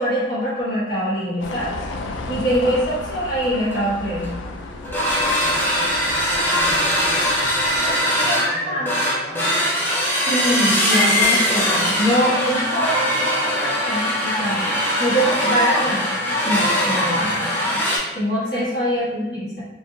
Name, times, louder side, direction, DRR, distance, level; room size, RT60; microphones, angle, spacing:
voice 1, 0.0-1.8 2.3-4.3 8.2-8.9 10.1-14.7 15.0-16.2 16.4-17.8 18.1-19.6, equal, 60° left, -12 dB, 1.2 m, -23 dB
sound 1, 1.4-7.9, left 2 dB, 90° left, 0.3 m, -34 dB
sound 2, 3.4-3.5 3.7-3.9 4.2-4.5 4.8-18.0, equal, 10° left, 0.5 m, -21 dB
voice 2, 5.5-9.7 15.8-16.0 19.0-19.1, equal, 30° left, -11 dB, 1.4 m, -40 dB
3.0 x 2.5 x 2.2 m, 1.0 s
head